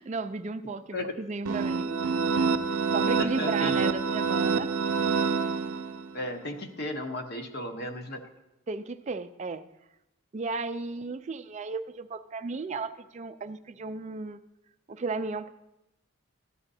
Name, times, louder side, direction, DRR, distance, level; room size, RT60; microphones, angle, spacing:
voice 1, 0.0-2.0 2.9-4.7 8.7-9.6 10.3-14.4 14.9-15.5, right 4 dB, 30° right, 11 dB, 0.3 m, -34 dB
sound 1, 1.5-6.2, right 5 dB, 85° right, 0.5 m, -27 dB
voice 2, 3.2-3.9 6.1-8.2, left 1 dB, 45° left, 5 dB, 0.9 m, -35 dB
14.0 x 9.9 x 2.7 m, 0.94 s
head